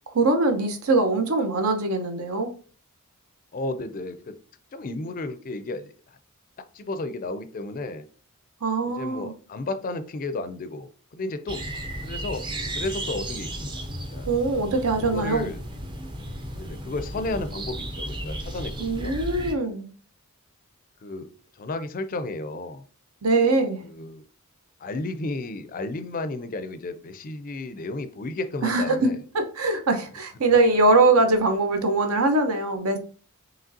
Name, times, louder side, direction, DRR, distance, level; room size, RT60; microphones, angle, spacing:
voice 1, 0.1-2.5 8.6-9.3 14.3-15.5 18.8-19.9 23.2-23.8 28.6-33.0, right 3 dB, 75° right, 0.7 m, -22 dB
voice 2, 3.5-4.4 4.7-6.2 6.7-8.0 9.0-10.9 11.1-11.6 12.0-12.5 12.8-13.8 14.1-14.3 15.1-15.6 16.5-19.2 21.0-21.3 21.6-22.8 23.8-24.2 24.8-29.2, left 2 dB, 40° left, 0.4 m, -33 dB
sound 1, 11.5-19.5, right 1 dB, 20° right, 0.5 m, -34 dB
5.0 x 3.1 x 2.7 m
head